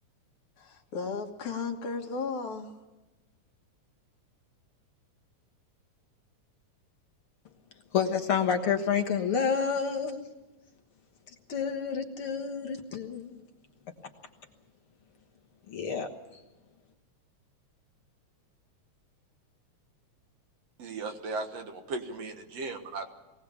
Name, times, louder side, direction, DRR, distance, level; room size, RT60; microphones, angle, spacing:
voice 1, 0.6-2.8, left 4 dB, 75° left, 3 dB, 3.2 m, -35 dB
voice 2, 7.9-10.3 11.5-13.4 15.7-16.4, left 6 dB, 55° left, 3 dB, 2.0 m, -29 dB
voice 3, 20.8-23.1, right 3 dB, 60° right, 6 dB, 2.5 m, -36 dB
23.0 x 18.0 x 7.2 m, 1.1 s
omnidirectional pair, 3.4 m